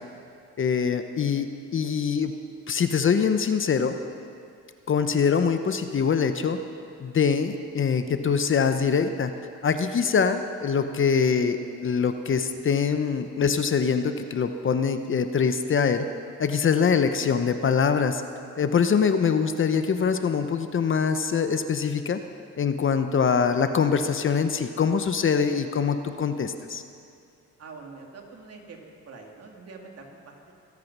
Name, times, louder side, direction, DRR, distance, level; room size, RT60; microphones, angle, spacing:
voice 1, 0.6-2.3 2.7-4.0 4.9-6.6 7.0-9.3 9.6-11.6 11.8-16.0 16.4-18.2 18.6-22.2 22.6-26.8, left 6 dB, 40° left, 9 dB, 0.8 m, -23 dB
voice 2, 27.6-30.5, right 4 dB, 55° right, 1 dB, 2.5 m, -45 dB
23.0 x 8.4 x 6.1 m, 2.4 s
cardioid pair, 90°, 30 cm